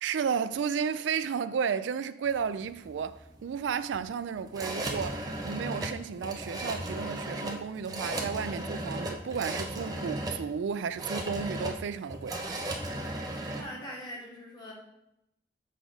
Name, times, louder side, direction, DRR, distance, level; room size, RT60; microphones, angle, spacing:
voice 1, 0.0-12.4, right 6 dB, 90° right, 0.3 m, -33 dB
sound 1, 2.3-13.6, right 1 dB, 20° right, 0.7 m, -36 dB
voice 2, 13.5-14.7, equal, 25° left, 2.0 m, -42 dB
6.4 x 3.9 x 5.1 m
head